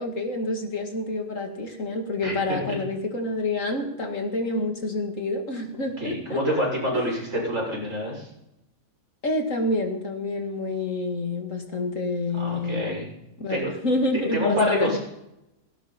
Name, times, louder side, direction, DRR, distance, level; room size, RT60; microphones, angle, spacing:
voice 1, 0.0-6.4 6.9-7.0 9.2-12.9 13.4-15.0, left 2 dB, 60° left, 3 dB, 2.6 m, -28 dB
voice 2, 6.0-8.3 12.3-13.1 13.5-13.7 14.3-15.0, left 1 dB, 55° right, -3 dB, 7.1 m, -26 dB
18.0 x 17.0 x 4.4 m, 0.86 s
omnidirectional pair, 1.5 m